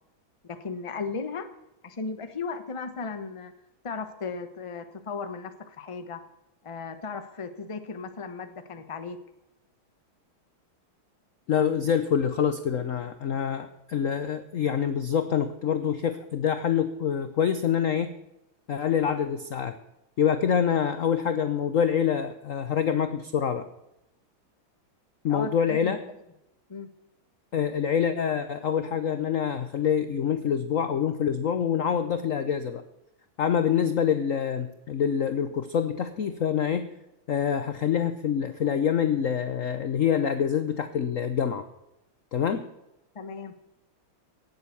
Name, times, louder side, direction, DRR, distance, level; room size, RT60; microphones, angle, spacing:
voice 1, 0.4-1.5 1.8-3.5 3.8-6.2 6.6-9.2 25.3-26.0 26.7-26.9 43.1-43.5, left 4 dB, 25° left, 9 dB, 0.7 m, -36 dB
voice 2, 11.5-18.1 18.7-19.8 20.2-23.7 25.2-26.0 27.5-32.8 33.4-36.9 37.3-41.6 42.3-42.6, left 8 dB, 60° left, 10 dB, 0.8 m, -26 dB
17.5 x 7.9 x 6.9 m, 0.90 s
omnidirectional pair, 2.3 m